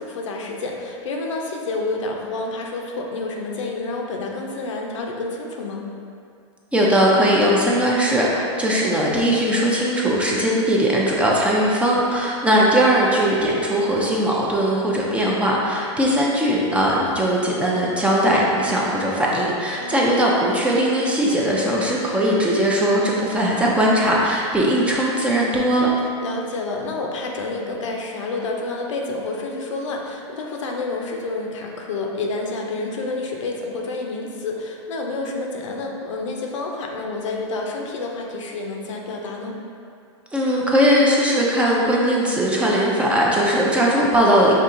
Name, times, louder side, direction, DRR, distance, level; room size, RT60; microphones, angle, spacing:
voice 1, 0.0-5.8 19.8-20.1 26.2-39.6, left 3 dB, 80° left, 0 dB, 0.6 m, -29 dB
voice 2, 6.7-25.9 40.3-44.5, equal, 10° right, -4 dB, 0.4 m, -19 dB
5.3 x 2.8 x 2.5 m, 2.4 s
hypercardioid pair, 130°, 16 cm